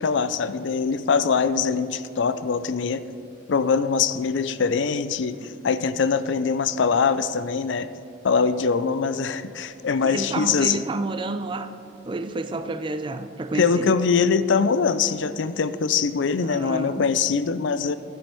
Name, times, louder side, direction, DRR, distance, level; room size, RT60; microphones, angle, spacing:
voice 1, 0.0-3.0 3.5-7.9 8.2-10.8 13.5-18.0, left 5 dB, 65° left, 13 dB, 0.4 m, -23 dB
voice 2, 10.0-11.7 12.0-13.9 16.4-17.1, right 2 dB, 25° right, 9 dB, 0.4 m, -30 dB
11.0 x 9.8 x 4.5 m, 2.5 s
head